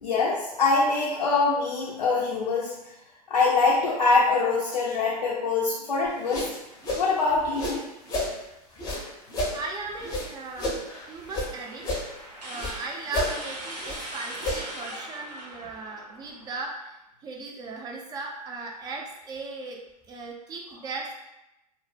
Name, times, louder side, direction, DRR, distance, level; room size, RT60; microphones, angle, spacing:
voice 1, 0.0-2.7 3.3-6.5 7.0-7.9, left 3 dB, 80° left, -5 dB, 0.5 m, -24 dB
sound 1, 6.1-8.3 8.7-11.5 11.8-12.8 13.1-14.9, left 1 dB, 20° left, 0.6 m, -32 dB
voice 2, 9.5-10.8 11.1-11.8 12.4-19.8 20.1-21.1, right 3 dB, 20° right, 0 dB, 0.4 m, -37 dB
sound 2, 10.2-16.7, right 1 dB, 90° right, 0.7 m, -41 dB
2.0 x 2.0 x 3.2 m, 0.90 s
hypercardioid pair, 100°, 21 cm